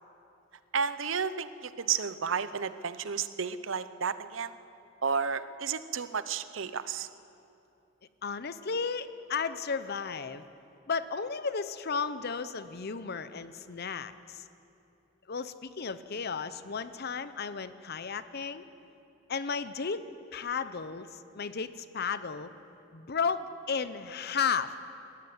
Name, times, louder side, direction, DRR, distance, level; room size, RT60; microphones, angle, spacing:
voice 1, 0.7-4.5 5.0-7.1, right 6 dB, 75° right, 13 dB, 0.8 m, -32 dB
voice 2, 8.2-10.4 10.9-14.4 15.3-18.6 19.3-22.5 22.9-24.7, left 5 dB, 55° left, 13 dB, 0.7 m, -34 dB
19.0 x 14.5 x 9.6 m, 2.8 s
head